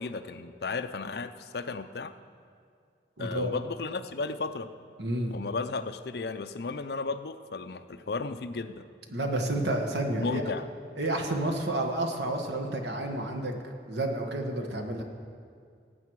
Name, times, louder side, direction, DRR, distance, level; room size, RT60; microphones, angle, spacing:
voice 1, 0.0-2.1 3.2-4.7 5.3-8.9 10.2-10.7, left 4 dB, 65° left, 11 dB, 0.5 m, -34 dB
voice 2, 3.2-3.5 5.0-5.3 9.1-10.4 11.0-13.6 13.9-15.0, right 1 dB, 75° right, 3 dB, 1.4 m, -30 dB
19.0 x 8.3 x 4.7 m, 2.3 s
head